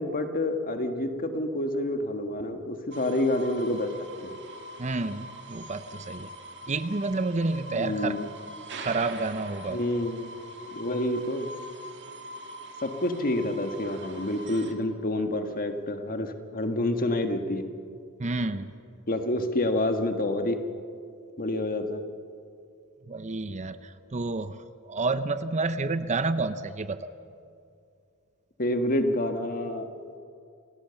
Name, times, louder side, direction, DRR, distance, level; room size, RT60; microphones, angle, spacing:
voice 1, 0.0-3.9 4.2-4.3 7.7-8.3 9.7-10.3 10.7-11.5 12.8-17.7 19.1-20.6 21.4-22.0 28.6-29.9, left 1 dB, 40° left, 6 dB, 1.6 m, -28 dB
sound 1, 2.9-14.7, right 1 dB, 55° right, 2.1 m, -43 dB
voice 2, 4.8-6.3 6.7-8.2 8.8-9.8 18.2-18.7 23.1-27.1, right 3 dB, 30° right, 12 dB, 0.7 m, -30 dB
28.5 x 17.5 x 7.1 m, 2.4 s
head